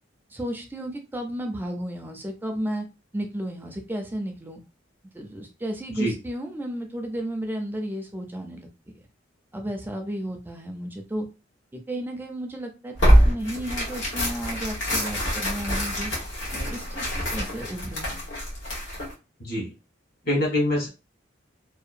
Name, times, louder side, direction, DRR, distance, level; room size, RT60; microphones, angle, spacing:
voice 1, 0.3-2.9 3.1-4.6 5.1-8.7 9.5-11.3 11.7-16.1 16.5-18.2, right 1 dB, 10° right, 3 dB, 0.4 m, -33 dB
Tearing, 13.0-19.1, equal, 80° left, 1.1 m, -24 dB
voice 2, 20.2-20.9, left 1 dB, 55° left, -2 dB, 1.3 m, -24 dB
2.7 x 2.2 x 2.4 m, 0.30 s
head